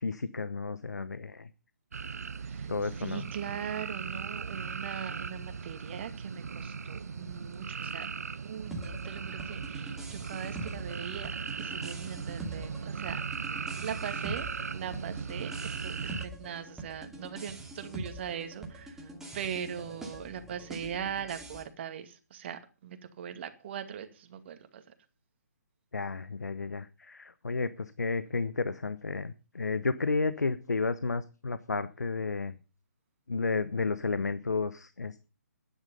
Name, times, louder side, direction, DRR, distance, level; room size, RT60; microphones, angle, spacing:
voice 1, 0.0-1.5 2.7-3.2 25.9-32.6 33.3-35.3, left 4 dB, 75° left, 1.0 m, -32 dB
sound 1, 1.9-16.3, right 5 dB, 65° right, 1.0 m, -38 dB
voice 2, 2.4-8.1 8.4-11.3 11.6-13.2 13.5-14.5 14.7-24.8, right 8 dB, 40° right, 2.2 m, -40 dB
sound 2, 8.7-21.6, right 2 dB, 5° right, 2.5 m, -44 dB
12.5 x 10.5 x 5.4 m
figure-of-eight pair, 140°, 9 cm